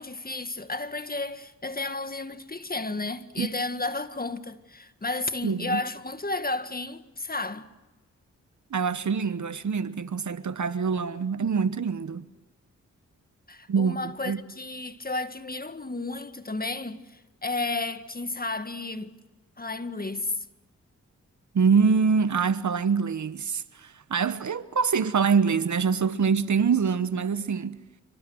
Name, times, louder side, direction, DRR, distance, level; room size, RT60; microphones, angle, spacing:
voice 1, 0.0-7.7 13.5-19.1 19.6-20.5, left 2 dB, 25° left, 1.8 m, -32 dB
voice 2, 5.4-5.8 8.7-12.2 13.7-14.0 14.3-14.4 21.5-27.8, right 5 dB, 60° right, 1.2 m, -25 dB
27.0 x 26.0 x 6.3 m
cardioid pair, 45°, 33 cm